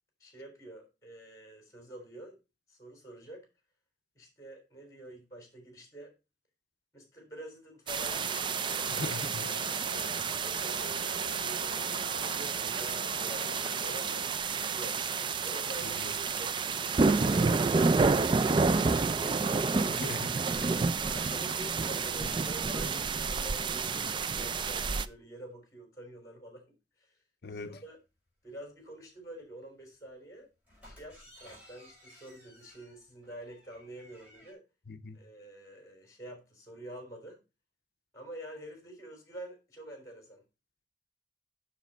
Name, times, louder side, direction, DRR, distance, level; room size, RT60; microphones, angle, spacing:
voice 1, 0.2-2.4 2.7-3.5 4.1-6.1 6.9-9.0 10.0-15.0 15.4-16.6 20.6-27.1 27.5-28.0 28.4-30.5 30.8-34.6 35.1-37.4 38.1-40.4, right 1 dB, 20° left, 3.8 m, -48 dB
sound 1, 7.9-25.1, right 4 dB, 25° right, 0.3 m, -30 dB
sound 2, 8.1-14.3, left 1 dB, 50° right, 4.1 m, -44 dB
voice 2, 8.9-9.5 15.8-16.1 19.9-20.3 27.4-27.8 34.9-35.2, left 3 dB, 60° left, 0.6 m, -40 dB
sound 3, 30.7-34.5, equal, 10° right, 5.8 m, -56 dB
7.3 x 6.8 x 4.3 m
head